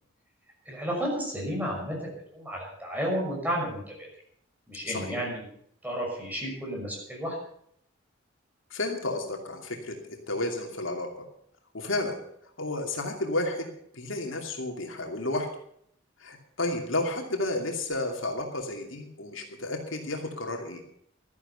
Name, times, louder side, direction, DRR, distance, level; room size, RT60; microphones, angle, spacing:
voice 1, 0.7-4.1 4.7-5.4 5.8-7.4, equal, 10° right, -2 dB, 6.1 m, -32 dB
voice 2, 4.9-5.2 8.7-11.1 11.7-12.2 12.6-13.7 13.9-15.5 16.2-20.8, left 2 dB, 75° left, 2 dB, 2.6 m, -32 dB
13.5 x 11.0 x 6.9 m, 0.68 s
head